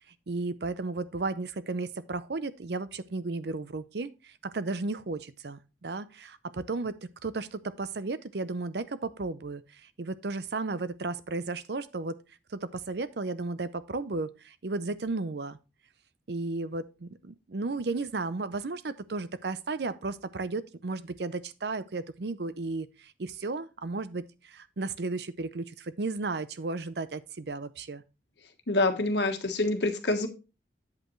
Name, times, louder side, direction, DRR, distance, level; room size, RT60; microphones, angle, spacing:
voice 1, 0.3-7.0 7.2-12.2 12.5-15.6 16.3-28.0, right 3 dB, 70° right, 0.6 m, -34 dB
voice 2, 28.7-30.3, left 2 dB, 80° left, 1.4 m, -26 dB
8.5 x 7.8 x 3.1 m
head